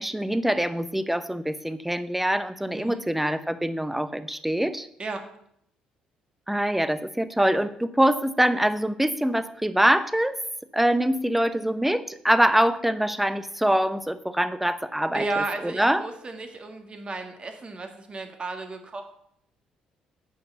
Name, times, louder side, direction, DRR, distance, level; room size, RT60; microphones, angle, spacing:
voice 1, 0.0-4.9 6.5-10.4 10.7-16.1, right 1 dB, 5° right, 13 dB, 0.8 m, -24 dB
voice 2, 15.1-19.1, right 3 dB, 35° right, 5 dB, 1.8 m, -33 dB
8.5 x 6.1 x 6.9 m, 0.72 s
figure-of-eight pair, 45°, 3 cm